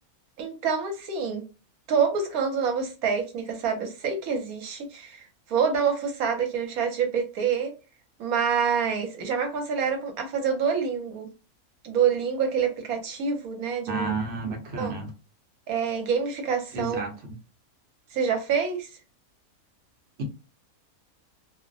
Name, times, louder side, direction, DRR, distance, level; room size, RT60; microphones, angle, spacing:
voice 1, 0.4-1.4 1.9-5.2 5.5-7.7 8.2-11.3 11.8-14.1 14.8-14.9 15.7-17.0 18.1-18.9, right 6 dB, 75° right, 1.2 m, -26 dB
voice 2, 13.9-15.1 16.7-17.3 20.2-20.3, right 3 dB, 55° right, 0.9 m, -31 dB
2.5 x 2.1 x 2.5 m
omnidirectional pair, 1.6 m